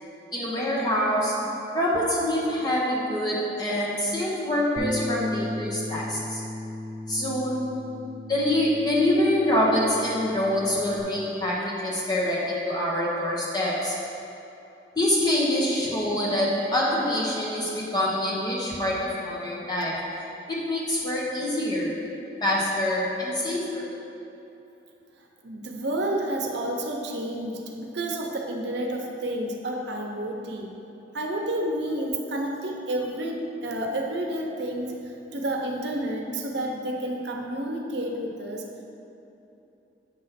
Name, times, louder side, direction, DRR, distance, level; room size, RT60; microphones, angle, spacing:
voice 1, 0.3-6.4 7.1-8.0 8.3-14.2 14.9-24.0, left 1 dB, 25° left, -5 dB, 1.0 m, -26 dB
Bass guitar, 4.8-11.0, left 1 dB, 30° right, 0.8 m, -36 dB
voice 2, 25.4-30.7 31.1-38.6, right 1 dB, 75° right, 1 dB, 0.7 m, -30 dB
8.0 x 3.2 x 5.7 m, 2.9 s
head